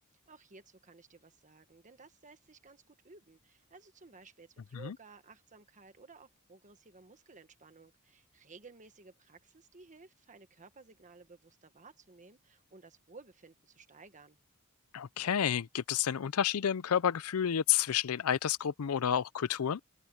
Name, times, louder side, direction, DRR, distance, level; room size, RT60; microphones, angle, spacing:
voice 1, 0.3-14.4, right 4 dB, 35° right, 1.5 m, -56 dB
voice 2, 14.9-19.8, left 9 dB, 75° left, 0.5 m, -30 dB
open air
head